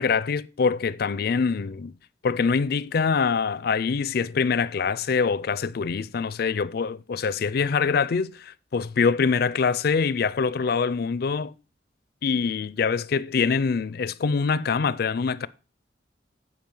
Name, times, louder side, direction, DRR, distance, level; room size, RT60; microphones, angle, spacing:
voice 1, 0.0-1.9 2.2-11.5 12.2-15.5, left 5 dB, 55° left, 0.4 m, -24 dB
10.5 x 5.1 x 5.4 m
head